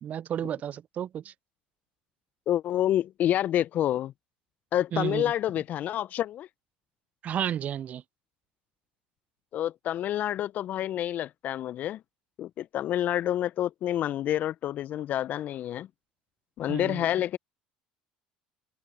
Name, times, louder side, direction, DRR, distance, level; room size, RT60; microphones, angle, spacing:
voice 1, 0.0-1.3 4.9-5.3 7.2-8.0 16.7-17.0, right 9 dB, 45° right, 0.5 m, -32 dB
voice 2, 2.5-4.1 4.7-6.5 9.5-12.0 12.4-15.9 16.6-17.4, left 12 dB, 50° left, 0.7 m, -28 dB
open air
hypercardioid pair, 65°, 4 cm